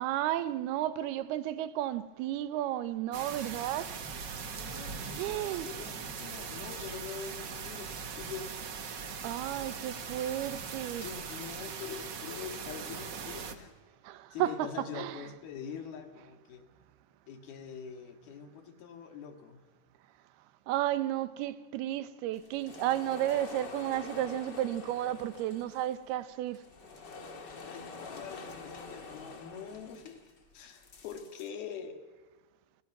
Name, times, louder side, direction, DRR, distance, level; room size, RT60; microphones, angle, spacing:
voice 1, 0.0-3.9 5.2-5.7 9.2-11.1 14.0-14.7 14.9-15.2 20.7-26.6, right 13 dB, 85° right, 2.9 m, -33 dB
sound 1, 3.1-13.5, right 6 dB, 70° right, 1.0 m, -40 dB
voice 2, 4.5-8.6 10.9-13.7 14.3-16.7 17.3-19.6 27.7-30.2 30.5-32.0, left 7 dB, 75° left, 3.9 m, -44 dB
sound 2, 22.3-31.5, left 4 dB, 35° left, 2.0 m, -47 dB
30.0 x 29.0 x 6.0 m
omnidirectional pair, 4.4 m